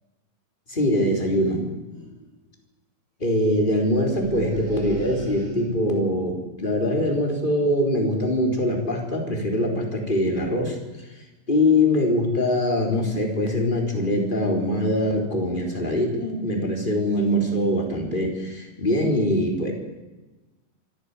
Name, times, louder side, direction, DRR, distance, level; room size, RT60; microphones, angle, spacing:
voice 1, 0.7-1.7 3.2-10.8 11.5-19.7, left 1 dB, 15° left, 2 dB, 4.2 m, -23 dB
sound 1, 1.6-1.7 1.9-2.3 4.0-6.0, equal, 55° right, 7.5 m, -38 dB
24.5 x 13.0 x 9.8 m, 1.1 s
omnidirectional pair, 3.3 m